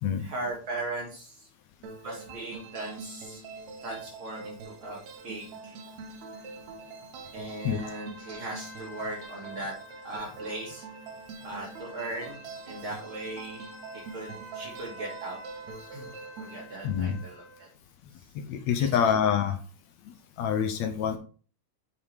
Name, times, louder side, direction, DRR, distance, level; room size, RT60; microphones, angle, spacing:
voice 1, 0.2-1.5 2.0-3.4 3.8-5.8 7.3-9.7 10.0-10.8 11.4-13.7 13.9-15.4 15.9-16.1 16.4-17.7 18.8-18.9, right 2 dB, 45° right, -3 dB, 3.4 m, -38 dB
sound 1, 1.8-16.6, right 4 dB, 70° right, 2.3 m, -44 dB
sound 2, 7.8-17.7, equal, 10° left, 1.6 m, -49 dB
voice 2, 16.8-17.2 18.4-19.6 20.4-21.2, left 8 dB, 75° left, 7 dB, 1.9 m, -26 dB
8.1 x 5.5 x 3.5 m, 0.38 s
omnidirectional pair, 3.4 m